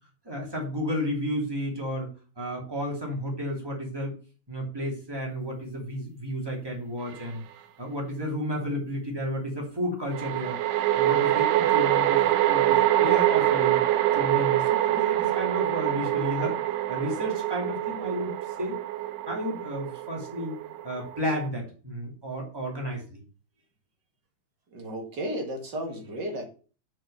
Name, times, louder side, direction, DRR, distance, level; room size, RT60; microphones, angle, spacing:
voice 1, 0.2-2.1 2.4-4.1 4.5-7.4 7.8-10.6 10.9-13.8 14.1-16.6 16.9-18.3 18.6-18.8 19.3-20.6 20.8-23.2, equal, 10° right, -1 dB, 2.5 m, -32 dB
sound 1, 7.1-7.3 10.1-21.5, right 14 dB, 80° right, 2.3 m, -25 dB
voice 2, 24.7-26.4, right 1 dB, 40° right, 3 dB, 1.8 m, -33 dB
7.2 x 6.1 x 5.6 m, 0.38 s
omnidirectional pair, 3.9 m